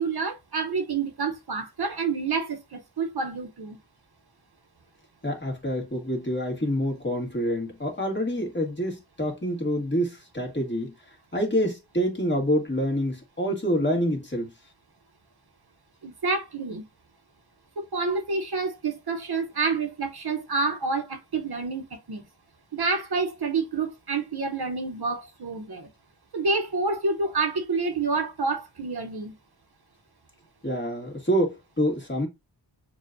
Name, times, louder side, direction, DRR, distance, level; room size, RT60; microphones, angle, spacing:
voice 1, 0.0-3.8 16.0-16.9 17.8-22.2 22.7-25.9 26.3-29.3, right 4 dB, 55° right, 0.8 m, -28 dB
voice 2, 5.2-14.5 30.6-32.3, equal, 25° left, 1.6 m, -27 dB
6.6 x 2.3 x 2.5 m
wide cardioid pair, 75°, 46 cm